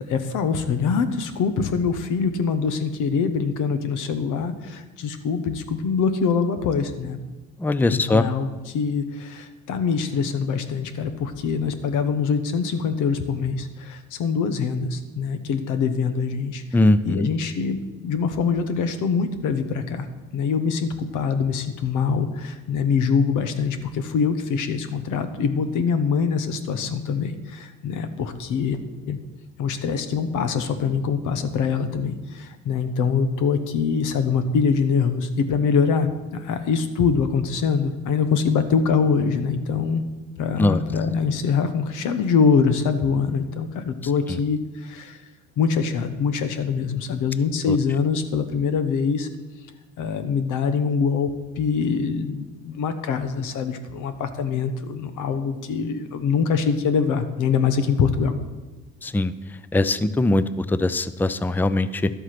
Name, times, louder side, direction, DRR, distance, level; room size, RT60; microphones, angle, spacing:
voice 1, 0.1-7.2 7.9-16.8 17.0-20.1 20.3-28.8 29.1-29.2 29.6-40.0 40.4-45.2 45.6-49.3 50.0-58.4, left 5 dB, 90° left, 9 dB, 1.1 m, -24 dB
voice 2, 7.6-8.2 16.7-17.3 40.6-40.8 47.7-47.8 59.0-59.3 59.7-62.1, left 2 dB, 5° left, 14 dB, 0.4 m, -21 dB
11.5 x 8.0 x 6.0 m, 1.2 s
cardioid pair, 90°, 30 cm